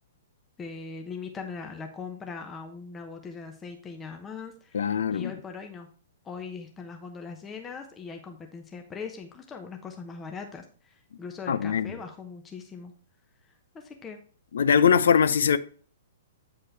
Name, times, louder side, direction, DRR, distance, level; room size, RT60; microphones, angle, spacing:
voice 1, 0.6-5.9 6.2-12.9 13.7-14.2, left 5 dB, 15° left, 0.9 m, -40 dB
voice 2, 4.7-5.3 11.5-11.9 14.5-15.6, left 7 dB, 60° left, 0.6 m, -22 dB
8.5 x 5.5 x 3.3 m
figure-of-eight pair, 115°, 0 cm